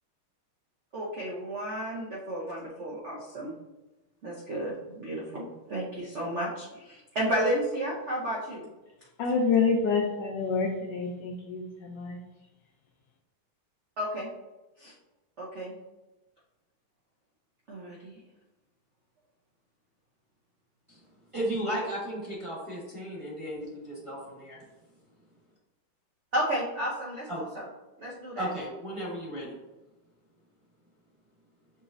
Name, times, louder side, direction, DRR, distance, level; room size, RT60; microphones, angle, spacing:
voice 1, 0.9-3.5 4.2-8.7 14.0-14.3 14.8-14.9 15.4-15.7 17.7-18.2 26.3-27.7 28.0-28.5, right 1 dB, 75° right, -4 dB, 0.6 m, -32 dB
voice 2, 9.2-12.2, left 5 dB, 75° left, 0 dB, 1.1 m, -27 dB
voice 3, 21.3-24.6 27.3-27.4 28.4-29.6, right 1 dB, 20° right, -6 dB, 0.9 m, -34 dB
6.8 x 3.0 x 2.5 m, 1.0 s
omnidirectional pair, 2.3 m